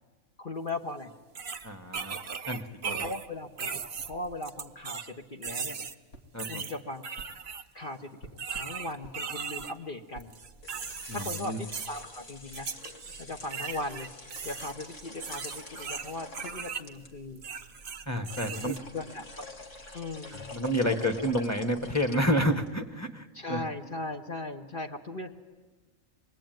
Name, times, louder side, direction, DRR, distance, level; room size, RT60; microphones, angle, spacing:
voice 1, 0.4-1.1 3.0-3.8 4.1-5.8 6.5-7.0 7.7-10.3 11.1-12.7 13.2-14.1 14.4-17.4 18.5-19.4 19.9-20.6 23.3-25.3, left 2 dB, 40° left, 1 dB, 1.3 m, -38 dB
sound 1, 0.7-0.8 1.3-3.3 3.6-5.1 5.4-5.9 6.4-7.6 8.4-9.7 10.2-11.4 11.7-12.0 12.5-13.2 13.5-16.9 17.4-18.8, right 6 dB, 50° right, 1.2 m, -38 dB
voice 2, 1.6-2.2 2.5-3.1 6.3-6.6 11.1-11.6 18.1-18.7 20.3-23.6, equal, 10° left, 6 dB, 1.3 m, -29 dB
sound 2, 6.1-6.3 7.2-7.3 8.2-8.7 9.0-9.2 9.6-9.7 10.1-10.3, right 3 dB, 90° left, 2.3 m, -47 dB
sound 3, 10.4-22.8, left 2 dB, 60° left, 2.3 m, -46 dB
25.5 x 20.5 x 9.2 m, 1.3 s
omnidirectional pair, 1.5 m